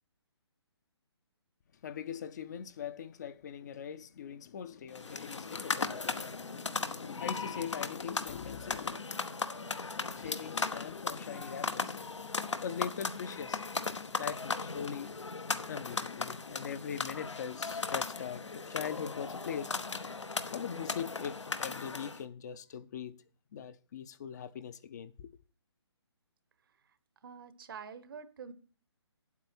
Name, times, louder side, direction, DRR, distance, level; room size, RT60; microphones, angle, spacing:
voice 1, 1.8-9.0 10.1-12.3 12.6-13.6 14.2-15.1 15.7-19.8 20.5-23.2 23.5-25.3, left 8 dB, 40° left, 0.6 m, -41 dB
sound 1, 4.9-22.2, left 4 dB, 90° left, 1.1 m, -37 dB
voice 2, 27.2-28.5, right 6 dB, 50° right, 1.0 m, -46 dB
9.2 x 8.3 x 4.2 m
figure-of-eight pair, 150°, 15 cm